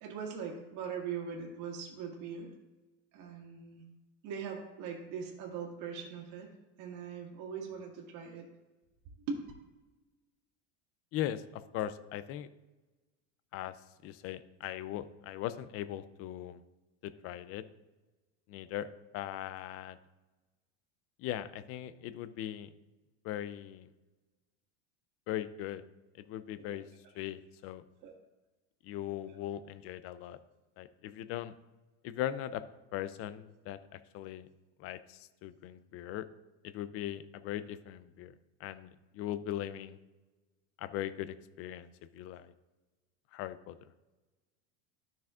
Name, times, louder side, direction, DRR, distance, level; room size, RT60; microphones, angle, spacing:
voice 1, 0.0-2.5 3.1-3.8 4.2-6.5 6.8-8.5 9.3-9.4 26.6-26.8 28.0-28.1 29.3-29.6, right 6 dB, 55° right, -2 dB, 1.9 m, -41 dB
voice 2, 11.1-12.5 13.5-13.7 14.0-16.6 17.0-17.6 18.5-18.9 19.1-20.0 21.2-22.7 23.2-23.9 25.3-25.8 26.2-26.8 27.1-27.8 28.8-30.4 30.8-31.5 32.0-32.6 32.9-34.5 34.8-36.3 36.6-38.3 38.6-40.0 40.8-41.9 42.1-42.5 43.3-43.8, left 12 dB, 40° left, 13 dB, 0.5 m, -39 dB
13.0 x 6.0 x 2.5 m, 1.2 s
supercardioid pair, 145°, 37 cm